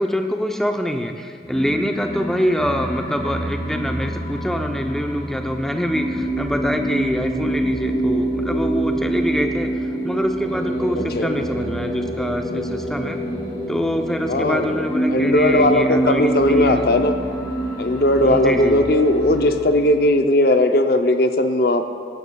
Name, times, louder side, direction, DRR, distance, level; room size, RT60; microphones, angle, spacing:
voice 1, 0.0-13.2 13.7-16.8 18.2-18.8, equal, ahead, 4 dB, 0.5 m, -25 dB
sound 1, 1.4-20.0, right 1 dB, 25° left, 3.0 m, -26 dB
voice 2, 11.0-11.3 14.3-17.1 17.8-21.9, left 1 dB, 55° left, 7 dB, 0.6 m, -18 dB
16.0 x 11.0 x 2.3 m, 2.1 s
head